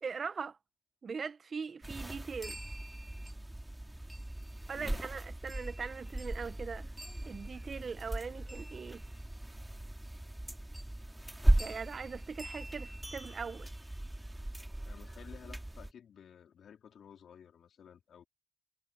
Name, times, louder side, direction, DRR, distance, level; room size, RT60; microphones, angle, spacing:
voice 1, 0.0-0.6 1.0-2.6 4.7-6.9 7.2-9.0 11.6-13.7, right 5 dB, 50° right, 0.7 m, -41 dB
sound 1, 1.8-15.9, right 1 dB, 10° right, 2.6 m, -37 dB
voice 2, 14.9-18.2, left 8 dB, 65° left, 4.0 m, -54 dB
supercardioid pair, 50°, 0 cm